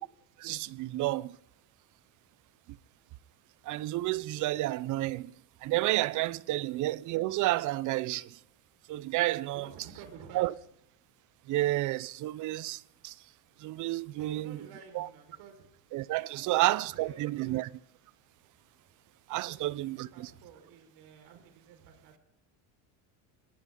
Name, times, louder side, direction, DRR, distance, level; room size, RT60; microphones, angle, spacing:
voice 1, 0.4-1.4 2.7-2.8 3.6-5.3 5.6-8.4 8.9-9.7 10.3-10.5 11.5-13.2 13.6-14.6 14.9-15.1 15.9-17.7 19.3-20.3, right 17 dB, 45° right, 0.6 m, -31 dB
voice 2, 9.5-10.5 14.2-15.6 16.3-17.6 19.4-22.2, right 7 dB, 60° right, 4.9 m, -52 dB
20.0 x 18.0 x 3.8 m
cardioid pair, 140°, 43 cm